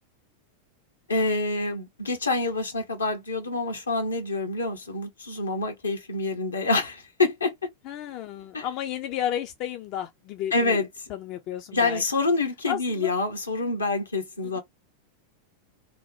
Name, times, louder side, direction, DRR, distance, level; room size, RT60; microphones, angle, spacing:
voice 1, 1.1-7.5 8.5-8.6 10.5-10.9 11.7-14.6, left 3 dB, 75° left, 0.8 m, -26 dB
voice 2, 7.9-10.8 11.1-12.0 12.7-13.1, left 11 dB, 40° left, 0.4 m, -32 dB
2.9 x 2.1 x 2.6 m
figure-of-eight pair, 90°, 0 cm